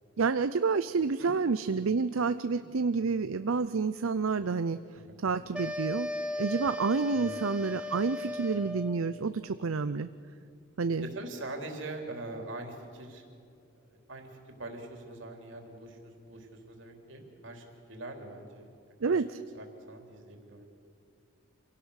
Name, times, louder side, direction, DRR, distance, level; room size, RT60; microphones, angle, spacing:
voice 1, 0.2-4.8 5.2-6.1 6.4-10.1 10.8-11.1 19.0-19.4, right 4 dB, 80° right, 12 dB, 0.6 m, -29 dB
sound 1, 5.5-9.0, left 2 dB, 5° right, 1.0 m, -36 dB
voice 2, 11.0-13.2 14.1-18.7 19.1-19.2 19.5-20.6, right 2 dB, 60° right, 3 dB, 3.6 m, -43 dB
27.0 x 17.5 x 6.5 m, 2.6 s
head